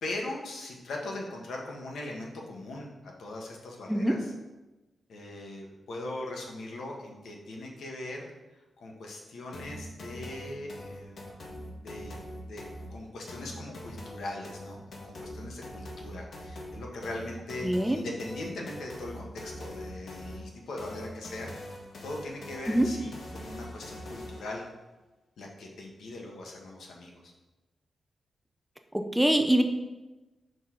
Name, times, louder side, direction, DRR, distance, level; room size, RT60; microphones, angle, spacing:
voice 1, 0.0-4.3 5.1-8.3 8.8-12.2 12.5-12.6 12.9-21.5 22.0-24.6 25.4-27.3, left 2 dB, 90° left, 0 dB, 1.2 m, -40 dB
sound 1, 9.5-24.5, left 1 dB, 55° left, 1.1 m, -43 dB
voice 2, 17.6-18.0 22.7-22.9 28.9-29.6, right 1 dB, 5° right, 5 dB, 0.4 m, -24 dB
6.0 x 5.3 x 3.8 m, 1.1 s
wide cardioid pair, 165°, 0 cm